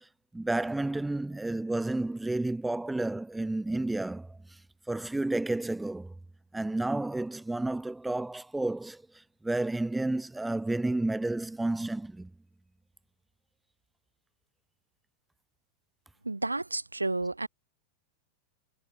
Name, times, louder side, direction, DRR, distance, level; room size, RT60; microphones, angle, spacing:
voice 1, 0.3-4.3 4.9-6.1 6.5-9.0 9.4-12.3, right 2 dB, 5° right, 0.7 m, -31 dB
voice 2, 16.3-17.5, right 2 dB, 80° right, 0.4 m, -31 dB
figure-of-eight pair, 90°, 0 cm